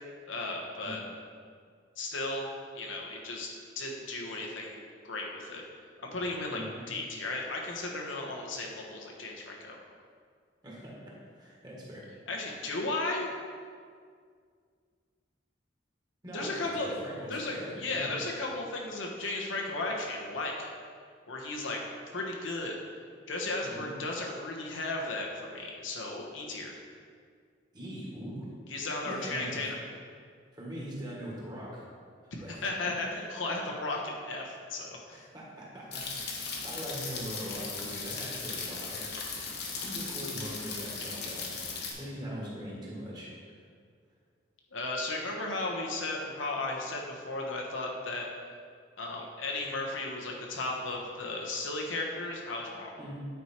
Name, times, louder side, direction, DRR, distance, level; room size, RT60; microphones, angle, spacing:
voice 1, 0.3-1.0 2.0-2.5 2.7-3.5 3.7-5.6 6.0-9.8 12.3-13.3 16.3-16.9 17.3-20.7 21.3-21.8 22.1-22.7 23.3-26.7 28.7-29.8 32.5-35.3 44.7-48.3 49.0-53.0, left 2 dB, 90° left, -1 dB, 1.2 m, -35 dB
voice 2, 6.5-6.8 10.6-10.9 11.4-12.0 16.2-18.1 23.6-23.9 27.7-28.5 29.0-29.6 30.5-31.8 32.4-32.6 32.8-32.9 35.1-36.3 36.6-39.1 39.8-41.7 42.0-43.3 53.0-53.2, equal, 20° right, -5 dB, 1.7 m, -41 dB
sound 1, 35.9-41.9, left 4 dB, 60° left, 1.1 m, -37 dB
9.2 x 4.6 x 4.4 m, 2.1 s
head